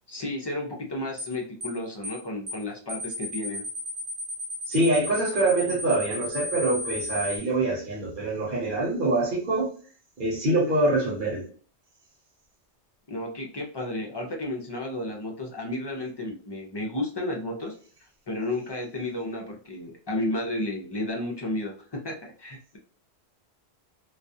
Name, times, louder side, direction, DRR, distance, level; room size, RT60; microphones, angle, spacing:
voice 1, 0.1-3.6 13.1-17.7 18.3-22.8, left 1 dB, 40° left, 1 dB, 0.3 m, -32 dB
sound 1, 1.2-1.3 1.6-1.8 2.0-2.2 2.5-2.6 2.9-7.4, left 1 dB, 10° right, 0.6 m, -34 dB
voice 2, 4.7-9.7 10.2-11.5, right 2 dB, 50° right, -4 dB, 1.0 m, -25 dB
2.3 x 2.3 x 2.5 m, 0.42 s
omnidirectional pair, 1.1 m